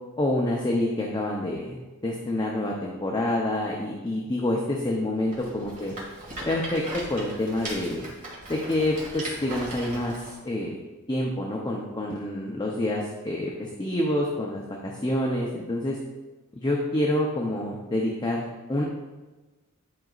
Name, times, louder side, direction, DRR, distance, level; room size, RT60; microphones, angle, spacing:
voice 1, 0.2-1.8 2.0-5.9 6.5-8.1 8.5-10.8 11.1-16.0 16.5-18.8, left 1 dB, 20° left, -2 dB, 0.6 m, -27 dB
Rattle, 5.3-10.4, right 1 dB, 35° right, 2.1 m, -38 dB
10.5 x 5.0 x 2.5 m, 1.2 s
head